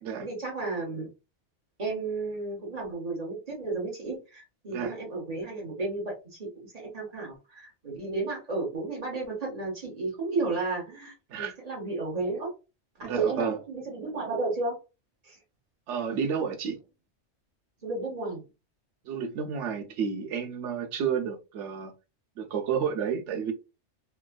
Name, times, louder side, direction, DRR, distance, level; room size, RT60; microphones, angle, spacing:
voice 1, 0.2-1.1 1.8-12.5 13.0-14.8 15.2-15.4 17.8-18.4, right 3 dB, 35° right, 1.3 m, -33 dB
voice 2, 13.0-13.6 15.9-16.8 19.0-21.9 22.4-23.5, right 7 dB, 85° right, 1.0 m, -31 dB
3.4 x 2.3 x 2.2 m
omnidirectional pair, 1.2 m